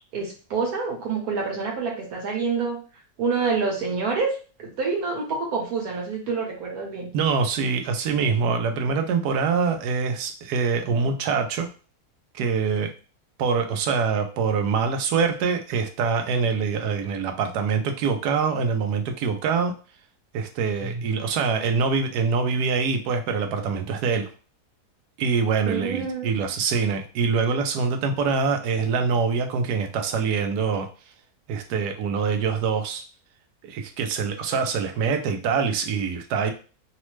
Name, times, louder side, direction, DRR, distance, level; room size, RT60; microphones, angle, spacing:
voice 1, 0.1-2.8 3.2-7.1 20.8-21.0 25.6-26.3, right 4 dB, 70° right, -1 dB, 1.5 m, -27 dB
voice 2, 7.1-11.7 12.3-12.9 13.4-19.7 20.3-24.3 25.2-30.9 31.5-33.0 33.6-36.5, right 5 dB, 90° right, 6 dB, 1.1 m, -24 dB
3.2 x 2.0 x 3.1 m, 0.37 s
omnidirectional pair, 1.7 m